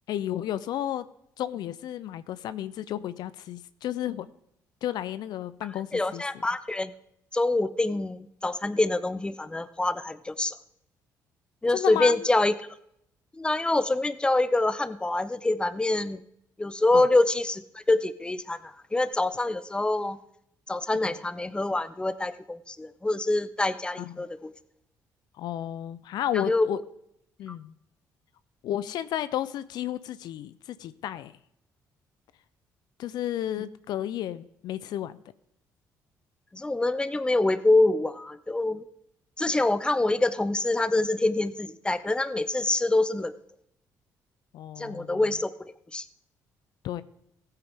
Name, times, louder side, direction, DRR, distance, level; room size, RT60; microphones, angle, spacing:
voice 1, 0.1-1.1 1.4-4.3 4.8-6.4 11.7-12.3 16.9-17.1 21.0-21.2 24.0-24.1 25.4-26.8 27.4-27.7 28.6-31.3 33.0-35.2 44.5-45.2 46.8-47.0, left 11 dB, 70° left, 15 dB, 0.5 m, -32 dB
voice 2, 5.9-6.9 7.3-10.5 11.6-12.5 13.3-16.2 16.6-20.2 20.7-24.5 26.5-26.7 33.6-33.7 36.5-38.8 39.4-43.3 44.8-45.5 45.9-46.0, left 2 dB, 15° left, 14 dB, 0.7 m, -25 dB
15.0 x 9.0 x 3.6 m, 0.76 s
supercardioid pair, 75°, 7 cm